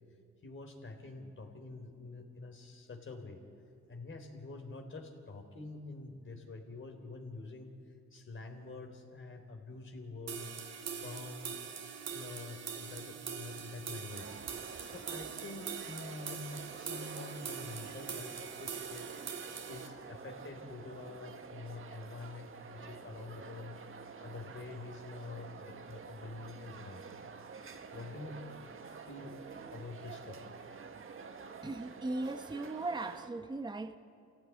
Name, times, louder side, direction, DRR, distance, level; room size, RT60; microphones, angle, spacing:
voice 1, 0.4-3.4 3.9-7.7 8.1-11.6 12.1-14.4 14.8-19.1 19.6-23.8 24.2-27.0 27.9-28.4 28.7-29.4 29.7-30.4, left 3 dB, 40° left, 4 dB, 3.8 m, -47 dB
sound 1, 10.3-19.9, right 7 dB, 60° right, 2.7 m, -43 dB
sound 2, 14.1-33.3, right 5 dB, 45° right, 1.7 m, -49 dB
voice 2, 31.6-34.0, right 2 dB, 15° right, 8 dB, 1.1 m, -38 dB
26.0 x 16.0 x 9.5 m, 2.4 s
cardioid pair, 90°, 30 cm